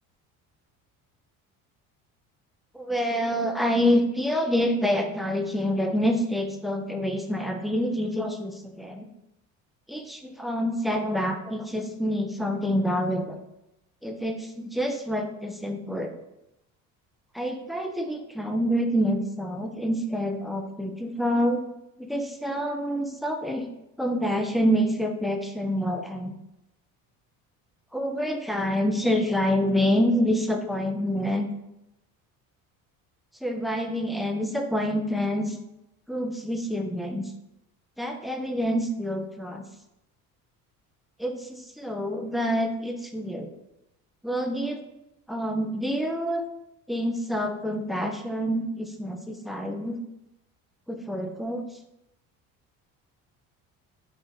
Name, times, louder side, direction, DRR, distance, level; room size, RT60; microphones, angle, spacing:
voice 1, 2.7-9.1 9.9-13.4 14.0-16.1 17.3-21.6 22.0-23.7 24.0-26.3 27.9-31.5 33.4-35.6 36.1-37.3 38.0-39.6 41.2-43.5 44.2-44.8 45.3-46.4 46.9-50.0 50.9-51.7, equal, ahead, 4 dB, 0.6 m, -27 dB
4.6 x 2.4 x 4.1 m, 0.86 s
hypercardioid pair, 65°, 41 cm